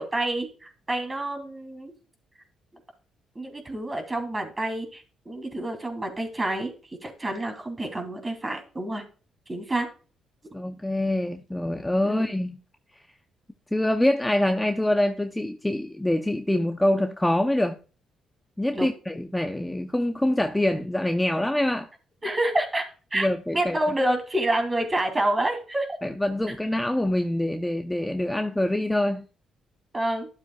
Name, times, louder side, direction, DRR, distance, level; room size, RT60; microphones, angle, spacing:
voice 1, 0.0-1.9 3.3-6.7 7.0-9.0 9.5-9.9 12.0-12.3 18.7-18.9 22.2-22.9 23.1-23.3 23.5-25.9 29.9-30.3, right 1 dB, 20° right, 2.9 m, -28 dB
voice 2, 10.5-12.6 13.7-17.8 18.6-21.9 23.1-23.8 26.0-29.2, left 1 dB, 10° left, 0.6 m, -25 dB
12.0 x 7.4 x 2.3 m
cardioid pair, 90°, 0 cm